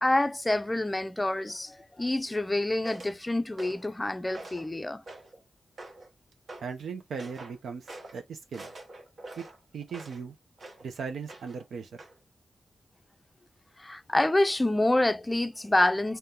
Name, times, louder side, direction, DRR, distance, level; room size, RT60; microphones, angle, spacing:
voice 1, 0.0-5.0 13.8-16.2, left 1 dB, 20° left, 0.4 m, -27 dB
sound 1, 2.8-3.2 3.6-3.9 4.3-4.7 5.1-5.4 5.8-6.1 6.5-6.7 7.2-7.6 7.9-8.2 8.5-10.2 10.6-10.9 11.3-11.6 12.0-12.2, right 2 dB, 65° right, 1.0 m, -45 dB
voice 2, 6.6-7.9 8.1-8.7 9.4-9.5 9.7-10.3 10.8-11.9, right 5 dB, 85° right, 0.5 m, -37 dB
2.8 x 2.1 x 3.6 m
cardioid pair, 45°, 0 cm